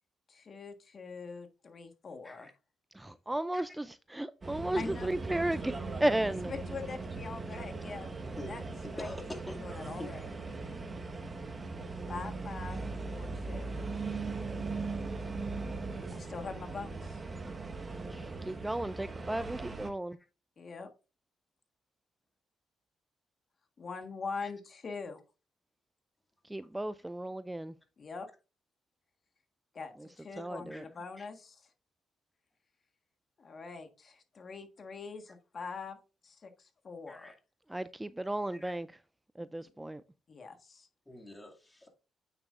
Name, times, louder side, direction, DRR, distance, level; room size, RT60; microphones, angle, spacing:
voice 1, 0.3-2.5 4.7-5.1 6.4-8.1 8.5-8.6 8.9-9.1 9.6-10.2 12.1-12.8 13.0-13.7 16.1-17.2 20.6-20.9 23.8-25.2 28.0-28.3 29.7-31.7 33.4-36.0 36.2-37.3 40.3-40.9, left 4 dB, 45° left, 1.4 m, -43 dB
voice 2, 2.9-6.5 18.1-20.2 26.4-27.7 30.4-30.8 37.7-38.9 39.4-40.0, right 1 dB, 10° right, 0.4 m, -34 dB
sound 1, 4.4-19.9, right 3 dB, 30° right, 1.3 m, -39 dB
voice 3, 8.8-10.2 24.4-24.5 30.7-30.8 31.2-31.3 37.1-37.3 38.5-38.7 41.1-41.9, left 1 dB, 10° left, 2.3 m, -45 dB
8.9 x 7.5 x 2.5 m
cardioid pair, 90°, 0 cm